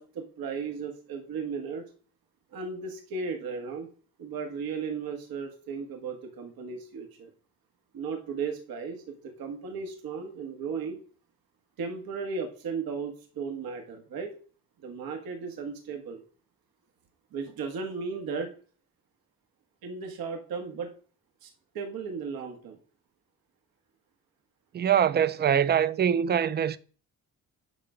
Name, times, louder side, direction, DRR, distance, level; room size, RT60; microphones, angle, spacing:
voice 1, 0.0-1.8 2.5-3.9 4.2-7.3 7.9-11.0 11.8-14.3 14.8-16.2 17.3-18.5 19.8-20.9 21.4-22.8, right 5 dB, 85° right, 1.7 m, -35 dB
voice 2, 24.7-26.8, right 8 dB, 30° right, 0.4 m, -23 dB
9.0 x 5.8 x 5.0 m
cardioid pair, 170°, 35 cm